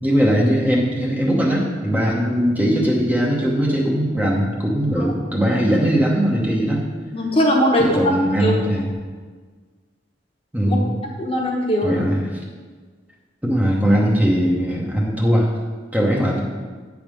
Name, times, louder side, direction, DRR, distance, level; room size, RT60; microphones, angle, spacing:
voice 1, 0.0-6.9 7.8-8.9 10.5-11.0 11.8-12.4 13.4-15.5 15.9-16.4, equal, 10° right, -3 dB, 0.8 m, -19 dB
voice 2, 7.1-8.0 8.4-8.5 10.7-10.8 11.2-12.0, equal, 30° left, -1 dB, 1.0 m, -20 dB
8.5 x 3.5 x 6.2 m, 1.5 s
head